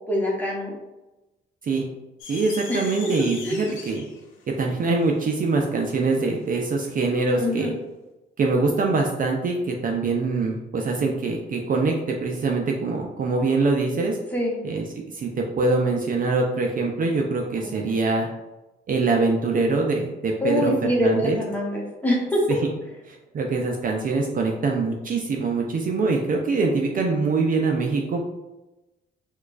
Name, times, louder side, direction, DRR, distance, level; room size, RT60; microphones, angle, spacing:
voice 1, 0.1-0.7 2.7-2.8 3.2-3.7 7.4-7.8 14.3-14.6 17.7-17.9 20.4-22.4, equal, 10° left, -3 dB, 1.0 m, -24 dB
sound 1, 2.2-6.7, left 6 dB, 85° left, 0.6 m, -41 dB
voice 2, 2.3-4.0 4.6-7.7 8.4-14.2 14.6-14.9 15.1-18.3 18.9-21.4 22.5-22.6 23.1-28.2, right 3 dB, 45° right, 1 dB, 0.5 m, -24 dB
4.4 x 2.3 x 2.4 m, 1.0 s
cardioid pair, 90°, 20 cm